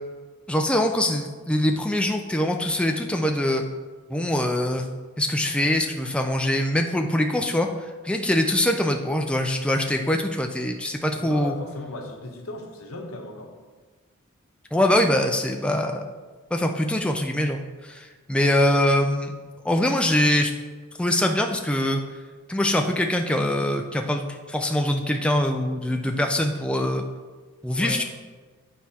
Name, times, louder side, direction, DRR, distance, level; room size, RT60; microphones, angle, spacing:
voice 1, 0.5-3.6 4.1-4.9 5.2-11.5 14.7-16.0 16.5-19.3 19.6-20.5 21.0-22.0 22.5-27.0 27.6-28.0, left 1 dB, 5° left, 3 dB, 0.3 m, -23 dB
voice 2, 11.2-13.5 27.7-28.0, left 2 dB, 80° left, 3 dB, 0.9 m, -36 dB
9.4 x 4.4 x 2.8 m, 1.4 s
head